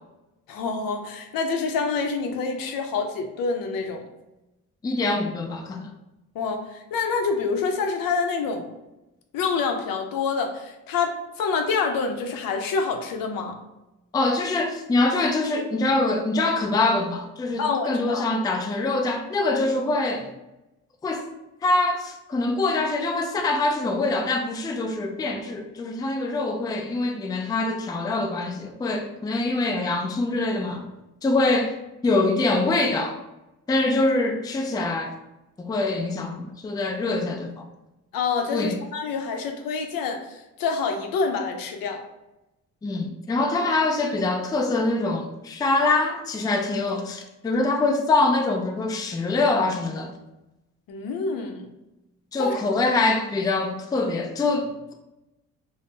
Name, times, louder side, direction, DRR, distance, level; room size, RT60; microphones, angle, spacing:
voice 1, 0.5-4.0 6.3-8.7 9.3-13.6 17.6-18.3 33.8-33.9 38.1-42.0 50.9-51.7 52.4-52.6, left 4 dB, 75° left, 0.6 m, -27 dB
voice 2, 4.8-5.9 14.1-20.3 21.0-21.2 21.6-30.8 31.2-31.7 32.0-33.2 33.7-35.2 35.6-37.7 38.5-38.8 42.8-50.1 52.3-54.9, left 2 dB, 10° left, 0.3 m, -24 dB
2.6 x 2.0 x 3.5 m
supercardioid pair, 70°, 35 cm